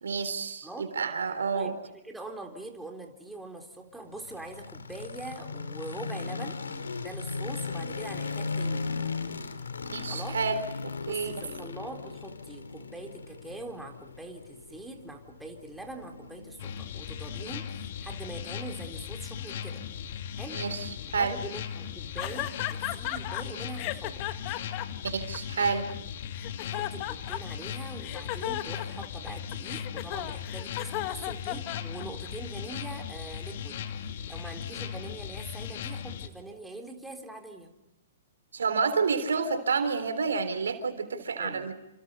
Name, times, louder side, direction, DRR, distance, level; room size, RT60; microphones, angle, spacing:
voice 1, 0.0-1.7 9.9-10.6 10.8-11.4 20.5-21.3 25.0-25.9 38.5-41.7, right 5 dB, 75° right, 10 dB, 3.5 m, -29 dB
voice 2, 1.5-6.6 7.0-8.9 10.1-10.4 11.0-19.8 20.4-20.6 21.2-24.2 26.2-26.3 26.6-37.7 41.1-41.7, right 2 dB, 5° right, 2 dB, 3.7 m, -43 dB
sound 1, 4.2-18.3, left 4 dB, 85° left, 2.8 m, -37 dB
sound 2, 16.6-36.3, left 8 dB, 55° left, 2.4 m, -38 dB
sound 3, 22.2-23.4 23.8-25.9 26.4-27.6 28.0-32.3, left 17 dB, 40° left, 1.7 m, -35 dB
29.0 x 28.0 x 5.5 m, 0.88 s
hypercardioid pair, 125°, 0 cm